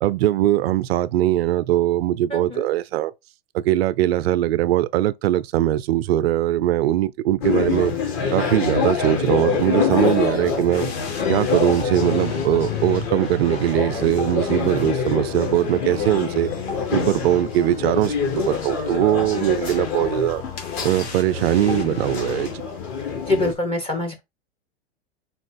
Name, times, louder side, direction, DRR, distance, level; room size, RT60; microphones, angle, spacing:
voice 1, 0.0-3.1 3.5-8.0 8.3-10.9 11.3-16.5 16.9-20.4 20.8-22.7, right 13 dB, 70° right, 0.5 m, -21 dB
voice 2, 2.3-2.7 23.3-24.2, left 2 dB, 15° left, 0.7 m, -24 dB
sound 1, 7.4-23.5, left 6 dB, 40° left, 1.5 m, -26 dB
sound 2, 10.7-22.5, left 4 dB, 75° left, 1.4 m, -35 dB
4.2 x 2.4 x 3.6 m
hypercardioid pair, 100°, 32 cm